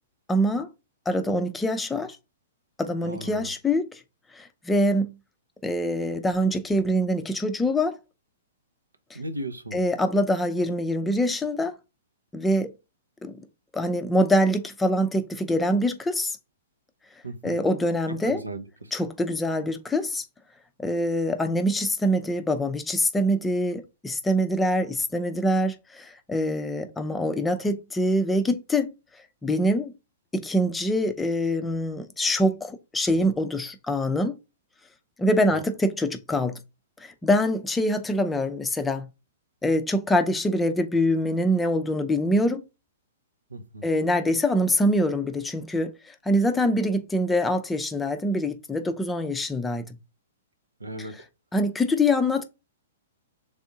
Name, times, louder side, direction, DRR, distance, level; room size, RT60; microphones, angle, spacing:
voice 1, 0.3-0.7 1.1-2.2 2.8-4.0 4.3-5.1 5.6-7.9 9.1-9.2 9.7-11.7 12.3-12.7 13.2-13.4 13.7-16.4 17.4-18.4 18.9-20.2 20.8-28.9 29.4-29.9 30.3-34.4 35.2-36.6 37.0-39.1 39.6-42.6 43.8-49.8 51.1-51.2 51.5-52.4, equal, 10° left, 0.5 m, -24 dB
voice 2, 3.0-3.5 9.1-9.8 17.2-17.6 18.2-18.9 35.5-35.6 43.5-43.9 50.8-51.1, right 2 dB, 85° right, 0.6 m, -36 dB
3.4 x 2.6 x 3.6 m
figure-of-eight pair, 115°, 0 cm